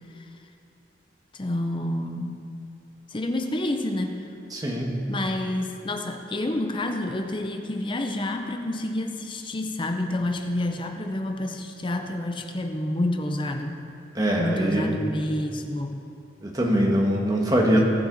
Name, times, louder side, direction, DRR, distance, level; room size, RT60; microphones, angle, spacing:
voice 1, 1.3-2.5 3.1-4.3 5.1-13.9 14.4-16.0, left 1 dB, 25° left, 5 dB, 0.7 m, -29 dB
voice 2, 4.5-5.0 14.1-14.9 16.4-17.9, equal, 20° right, -1 dB, 1.5 m, -22 dB
19.0 x 7.8 x 4.0 m, 2.6 s
head